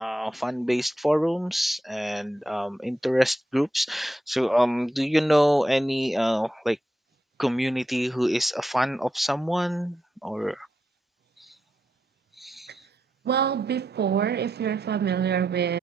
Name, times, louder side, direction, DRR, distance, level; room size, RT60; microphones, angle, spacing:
voice 1, 0.0-6.8 7.4-10.7 12.4-12.7, equal, ahead, 6.0 m, -25 dB
voice 2, 13.2-15.8, right 8 dB, 55° right, 4.1 m, -25 dB
cardioid pair, 90°, 20 cm